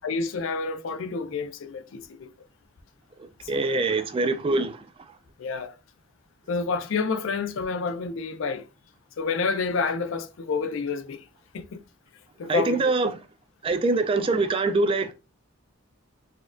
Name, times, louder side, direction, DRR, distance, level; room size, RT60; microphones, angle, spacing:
voice 1, 0.0-2.3 3.4-3.8 5.4-5.8 6.5-8.7 9.2-11.2 11.5-11.8 12.4-12.9, left 4 dB, 70° left, 0.4 m, -29 dB
voice 2, 3.2-4.9 12.5-13.2 13.6-15.1, right 3 dB, 25° right, 0.3 m, -24 dB
4.2 x 2.3 x 2.4 m
head